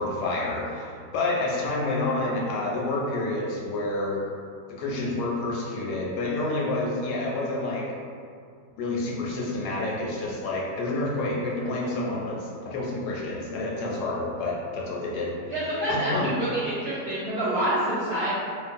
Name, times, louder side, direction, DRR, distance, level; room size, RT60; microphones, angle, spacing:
voice 1, 0.0-4.2 4.7-7.8 8.8-15.5 15.9-16.3, left 2 dB, 80° left, -4 dB, 1.1 m, -29 dB
voice 2, 15.5-18.3, right 1 dB, 65° right, -11 dB, 0.6 m, -27 dB
2.9 x 2.3 x 2.5 m, 2.3 s
omnidirectional pair, 1.8 m